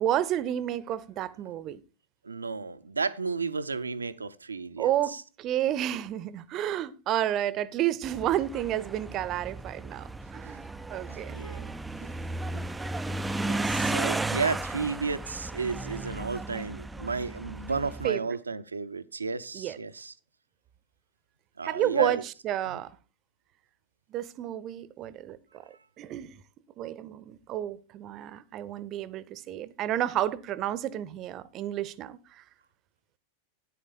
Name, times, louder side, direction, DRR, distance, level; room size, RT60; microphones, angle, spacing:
voice 1, 0.0-1.8 4.8-10.6 10.9-11.4 18.0-18.3 19.5-19.8 21.6-22.9 24.1-26.4 26.8-32.4, right 12 dB, 35° right, 0.7 m, -31 dB
voice 2, 2.2-5.2 11.1-11.7 12.0-12.1 12.5-12.7 13.4-20.1 21.6-22.2 22.7-22.8, right 4 dB, 75° right, 0.6 m, -33 dB
sound 1, 8.0-18.1, right 2 dB, 10° right, 0.4 m, -34 dB
10.0 x 8.4 x 4.1 m
figure-of-eight pair, 90°, 0 cm